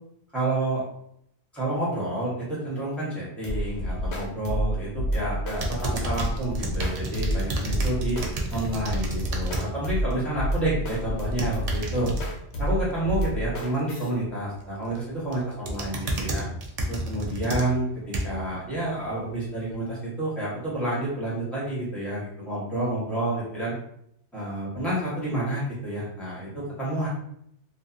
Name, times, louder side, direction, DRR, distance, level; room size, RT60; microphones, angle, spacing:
voice 1, 0.3-0.8 1.5-8.2 8.5-12.1 12.6-16.5 16.9-23.7 24.3-27.1, right 1 dB, ahead, -8 dB, 1.0 m, -29 dB
sound 1, 3.4-14.1, equal, 70° left, 0.9 m, -29 dB
sound 2, 5.6-9.7 10.1-10.4 11.2-12.2 14.6-15.0 15.3-18.5 19.1-19.2, right 1 dB, 80° right, 0.3 m, -31 dB
2.7 x 2.3 x 2.4 m, 0.72 s
omnidirectional pair, 1.2 m